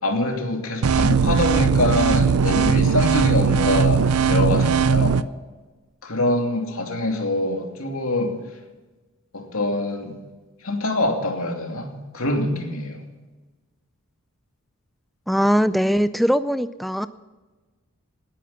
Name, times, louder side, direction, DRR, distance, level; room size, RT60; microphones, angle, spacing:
voice 1, 0.0-5.2 6.0-8.4 9.3-10.1 10.6-13.0, left 1 dB, 70° left, 2 dB, 2.8 m, -24 dB
sound 1, 0.8-5.2, right 6 dB, 90° right, 0.5 m, -19 dB
voice 2, 15.3-17.1, equal, ahead, 12 dB, 0.4 m, -20 dB
18.5 x 10.5 x 5.7 m, 1.2 s
head